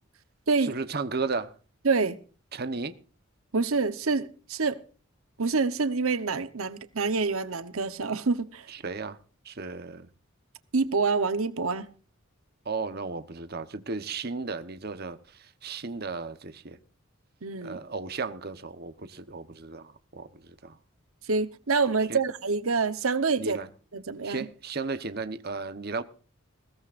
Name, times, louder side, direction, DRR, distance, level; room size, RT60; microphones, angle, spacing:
voice 1, 0.6-1.5 2.5-2.9 8.7-9.2 9.4-10.1 12.6-16.8 17.6-20.8 22.1-22.2 23.4-23.7 24.2-26.0, right 4 dB, 45° right, 1.1 m, -34 dB
voice 2, 1.8-2.2 3.5-4.8 5.4-8.7 10.7-11.8 17.4-17.8 21.3-23.6 23.9-24.5, right 4 dB, 85° right, 1.0 m, -26 dB
21.0 x 17.0 x 2.6 m
head